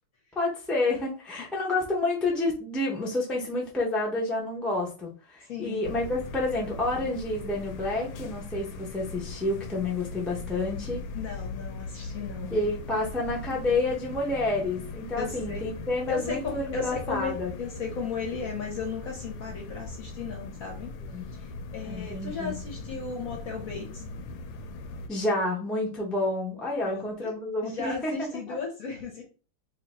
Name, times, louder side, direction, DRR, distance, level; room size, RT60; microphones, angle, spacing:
voice 1, 0.3-11.0 12.5-17.5 21.1-21.2 21.8-22.6 25.1-28.6, left 2 dB, ahead, -3 dB, 0.3 m, -29 dB
voice 2, 5.5-5.8 11.1-12.6 15.2-15.6 16.1-21.0 21.3-24.0 26.8-27.3 27.6-29.2, left 5 dB, 55° left, 1 dB, 1.0 m, -36 dB
sound 1, 5.8-25.1, left 3 dB, 75° left, 1.2 m, -39 dB
2.8 x 2.8 x 4.2 m, 0.36 s
omnidirectional pair, 2.2 m